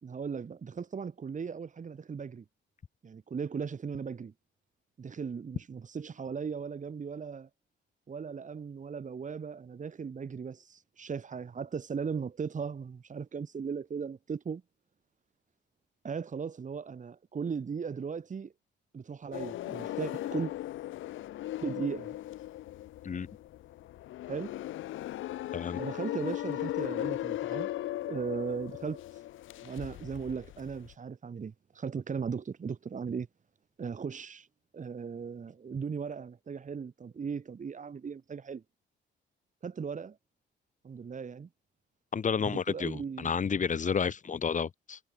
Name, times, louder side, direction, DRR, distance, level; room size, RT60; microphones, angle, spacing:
voice 1, 0.0-2.4 3.0-4.3 5.0-7.5 8.1-14.6 16.0-18.5 18.9-20.5 21.6-22.2 24.3-24.6 25.8-27.7 28.1-29.0 29.6-33.3 33.8-34.5 34.7-38.6 39.6-40.2 40.8-41.5 42.4-43.3, right 6 dB, 40° right, 2.8 m, -37 dB
sound 1, 19.3-30.9, left 14 dB, 80° left, 1.1 m, -38 dB
voice 2, 42.1-45.0, left 6 dB, 40° left, 1.5 m, -31 dB
cardioid pair, 90°, 20 cm